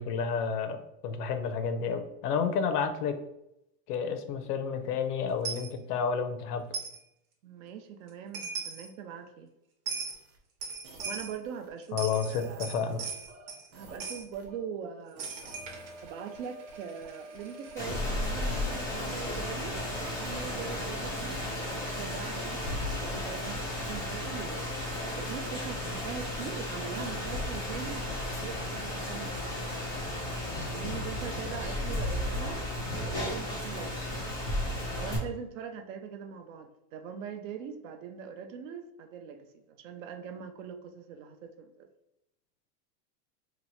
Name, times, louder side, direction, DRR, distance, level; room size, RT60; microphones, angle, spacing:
voice 1, 0.0-3.2 3.9-6.7 11.9-13.0, left 6 dB, 70° left, 7 dB, 0.7 m, -30 dB
Coin (dropping), 5.4-5.7 6.7-7.0 8.1-8.2 8.3-8.9 9.9-10.2 10.6-11.4 11.8-13.7 14.0-14.2 15.2-17.8, right 5 dB, 85° right, 1.1 m, -39 dB
voice 2, 7.4-9.5 11.0-12.8 13.7-15.3 16.0-24.6 25.2-29.8 30.7-32.7 33.0-34.2 34.9-41.9, right 7 dB, 55° right, 7 dB, 0.5 m, -42 dB
sound 1, 10.1-11.7 12.3-14.6 15.2-23.6, right 2 dB, 30° right, 0.8 m, -50 dB
Rain, 17.8-35.2, left 1 dB, 10° left, 0.3 m, -34 dB
2.9 x 2.1 x 4.1 m, 0.83 s
supercardioid pair, 140°, 48 cm